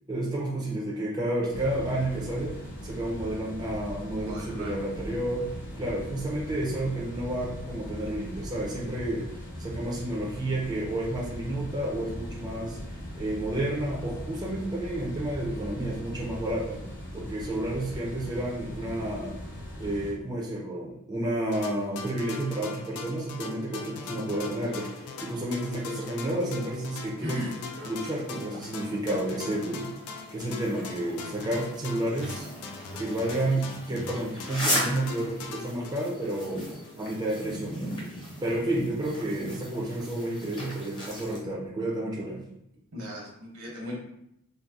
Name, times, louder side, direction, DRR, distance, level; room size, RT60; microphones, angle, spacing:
voice 1, 0.1-2.5 2.8-5.5 5.8-16.8 17.1-19.4 19.8-24.9 25.2-27.5 27.8-29.9 30.3-32.5 33.0-36.6 37.0-38.0 38.4-42.4, right 1 dB, 20° right, -4 dB, 0.5 m, -31 dB
sound 1, 1.5-20.1, equal, 55° left, 0.8 m, -40 dB
voice 2, 4.1-4.9 27.2-27.6 42.9-44.0, equal, 75° right, -2 dB, 1.0 m, -37 dB
sound 2, 21.5-36.9, left 4 dB, 75° left, 0.4 m, -41 dB
sound 3, 23.9-41.4, left 1 dB, 20° left, 0.7 m, -39 dB
3.8 x 2.0 x 2.3 m, 0.77 s
head